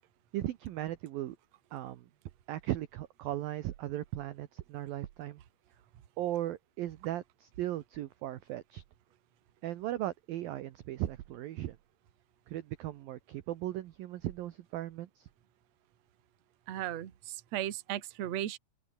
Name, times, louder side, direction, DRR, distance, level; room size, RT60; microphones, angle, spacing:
voice 1, 0.3-1.4 1.7-2.1 2.5-5.4 6.2-8.8 9.6-11.8 12.5-15.3, right 14 dB, 75° right, 2.2 m, -37 dB
voice 2, 16.7-18.6, right 12 dB, 55° right, 2.0 m, -36 dB
omnidirectional pair, 5.6 m